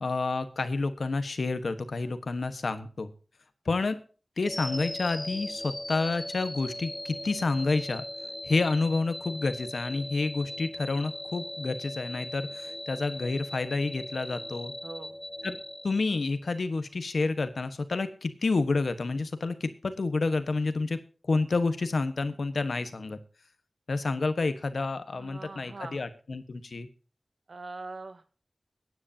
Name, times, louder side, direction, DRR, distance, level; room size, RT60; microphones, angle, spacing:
voice 1, 0.0-3.1 3.6-4.0 4.4-8.0 8.5-14.7 15.4-15.6 15.8-21.0 21.3-23.2 23.9-26.9, left 3 dB, 80° left, 10 dB, 1.3 m, -29 dB
sound 1, 4.4-16.6, left 1 dB, 15° left, 0.5 m, -39 dB
voice 2, 14.8-15.2 25.1-26.0 27.5-28.3, right 3 dB, 70° right, 10 dB, 1.5 m, -42 dB
22.5 x 9.7 x 2.8 m, 0.39 s
wide cardioid pair, 85°, 0 cm